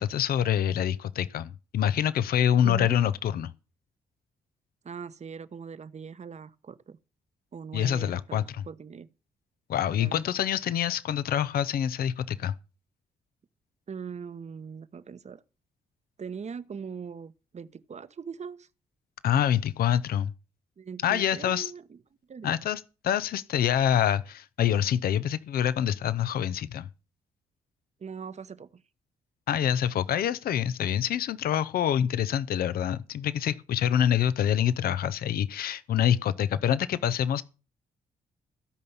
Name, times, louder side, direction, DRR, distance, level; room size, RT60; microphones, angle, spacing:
voice 1, 0.0-3.5 7.7-8.6 9.7-12.5 19.2-20.3 21.0-21.7 22.4-26.9 29.5-37.4, left 10 dB, 70° left, 0.7 m, -26 dB
voice 2, 2.6-3.0 4.8-7.0 7.5-9.1 10.0-10.2 13.9-15.4 16.2-18.7 20.8-22.0 22.3-22.6 28.0-28.8, right 6 dB, 45° right, 1.0 m, -41 dB
16.5 x 5.5 x 7.1 m
supercardioid pair, 50°, 16 cm